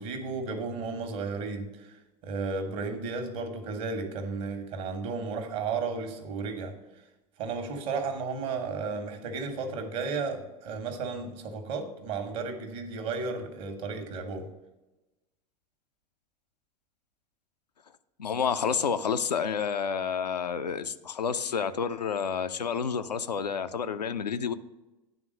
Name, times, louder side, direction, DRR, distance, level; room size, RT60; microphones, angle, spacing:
voice 1, 0.0-2.0 2.2-6.7 7.4-14.5, right 4 dB, 50° right, 6 dB, 1.3 m, -33 dB
voice 2, 18.2-24.5, left 6 dB, 80° left, 10 dB, 0.4 m, -29 dB
10.0 x 3.7 x 6.3 m, 1.1 s
figure-of-eight pair, 80°, 21 cm